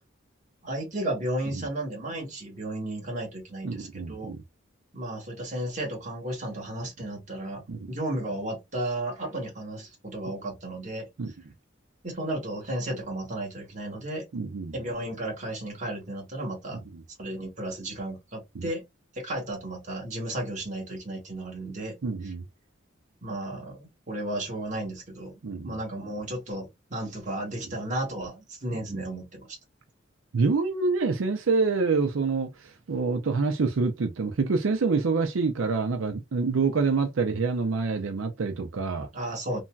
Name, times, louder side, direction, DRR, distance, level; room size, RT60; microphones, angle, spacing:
voice 1, 0.6-4.3 4.9-11.1 12.0-14.2 14.7-16.8 17.2-18.8 19.1-21.9 22.2-22.3 23.2-29.6 39.1-39.6, right 1 dB, 40° right, 1.2 m, -34 dB
voice 2, 3.6-4.4 7.7-7.9 11.2-11.3 14.3-14.8 18.5-18.7 22.0-22.4 25.4-25.8 28.9-29.0 30.3-39.1, right 4 dB, 85° right, 0.5 m, -26 dB
3.0 x 2.6 x 2.2 m
head